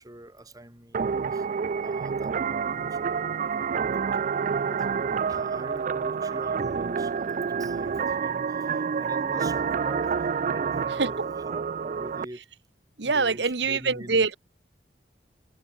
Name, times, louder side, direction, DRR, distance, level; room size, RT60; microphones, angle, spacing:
voice 1, 0.0-1.5 1.8-12.4 13.0-14.3, right 1 dB, 20° right, 3.2 m, -44 dB
sound 1, 0.9-12.3, right 6 dB, 45° right, 0.4 m, -28 dB
voice 2, 13.0-14.4, right 4 dB, 75° right, 1.3 m, -24 dB
head